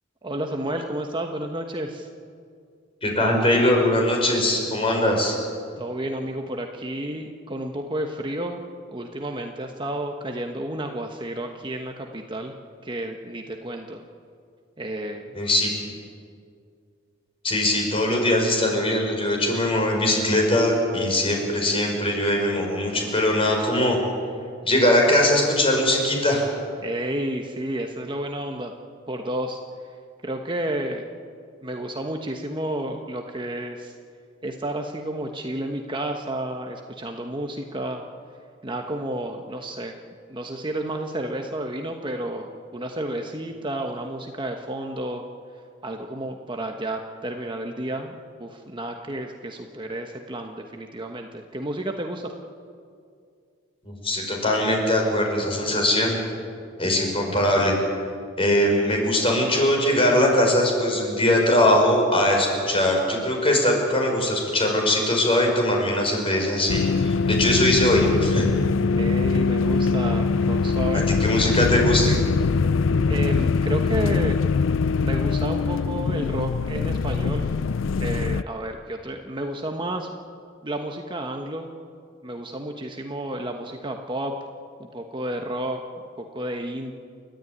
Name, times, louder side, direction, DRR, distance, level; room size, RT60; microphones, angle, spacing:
voice 1, 0.2-2.1 5.8-8.6 8.9-12.5 12.8-14.0 14.8-15.4 26.8-28.7 29.1-29.6 30.2-31.0 31.6-33.9 34.4-38.0 38.6-39.9 40.3-45.2 45.8-52.3 69.0-71.1 73.1-74.4 75.0-77.5 78.0-80.1 80.6-81.7 82.2-84.3 84.8-85.8 86.3-86.9, right 1 dB, 25° right, 3 dB, 1.2 m, -31 dB
voice 2, 3.0-5.4 15.3-15.7 17.4-24.0 24.6-26.5 53.8-56.2 56.8-57.8 58.4-68.5 71.2-72.2, left 1 dB, 30° left, 1 dB, 5.4 m, -21 dB
sound 1, 66.7-78.4, left 4 dB, 70° left, 0.5 m, -22 dB
30.0 x 13.0 x 9.5 m, 2.2 s
head